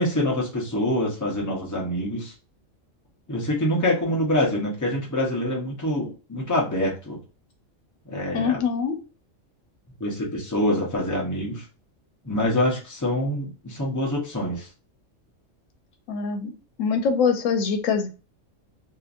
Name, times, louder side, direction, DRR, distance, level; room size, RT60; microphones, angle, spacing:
voice 1, 0.0-2.3 3.3-7.2 8.1-8.6 10.0-11.6 12.2-14.7, left 1 dB, 20° left, -2 dB, 0.7 m, -25 dB
voice 2, 8.3-9.0 16.1-16.5 16.8-18.1, left 6 dB, 90° left, 7 dB, 1.0 m, -23 dB
2.8 x 2.5 x 2.4 m, 0.33 s
omnidirectional pair, 1.3 m